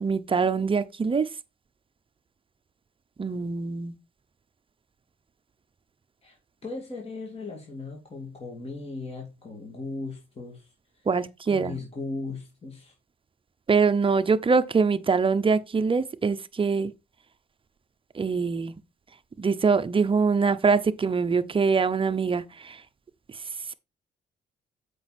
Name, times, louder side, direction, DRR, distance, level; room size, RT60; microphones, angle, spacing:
voice 1, 0.0-1.3 3.2-3.9 11.1-11.8 13.7-16.9 18.2-18.7 19.4-22.7, right 5 dB, 25° right, 0.8 m, -23 dB
voice 2, 6.6-11.1 11.5-12.9, left 3 dB, 30° left, 2.7 m, -37 dB
7.8 x 5.4 x 4.3 m
cardioid pair, 90°, 20 cm